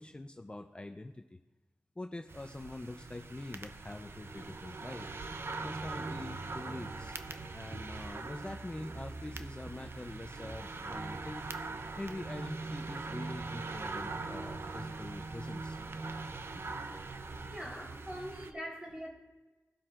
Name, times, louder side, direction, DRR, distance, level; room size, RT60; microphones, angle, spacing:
voice 1, 0.0-1.4 2.0-5.1 5.6-7.2 7.5-11.4 12.0-15.8, left 2 dB, 20° left, 5 dB, 0.5 m, -44 dB
sound 1, 2.3-18.5, right 3 dB, 50° right, 0.6 m, -41 dB
voice 2, 17.5-19.1, equal, 15° right, -2 dB, 3.7 m, -42 dB
18.0 x 7.5 x 2.5 m, 1.2 s
cardioid pair, 60°, 5 cm